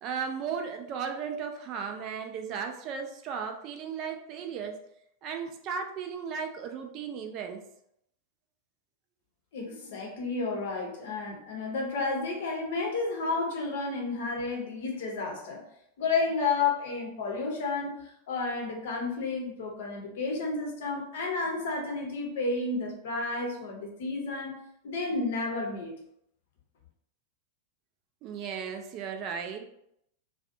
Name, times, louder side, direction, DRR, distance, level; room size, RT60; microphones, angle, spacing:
voice 1, 0.0-4.8 5.2-7.6 28.2-29.7, right 6 dB, 40° right, 5 dB, 0.3 m, -35 dB
voice 2, 9.5-15.6 16.0-24.6 24.8-26.0, left 3 dB, 55° left, 0 dB, 0.7 m, -31 dB
2.5 x 2.2 x 2.5 m, 0.76 s
figure-of-eight pair, 90°, 0 cm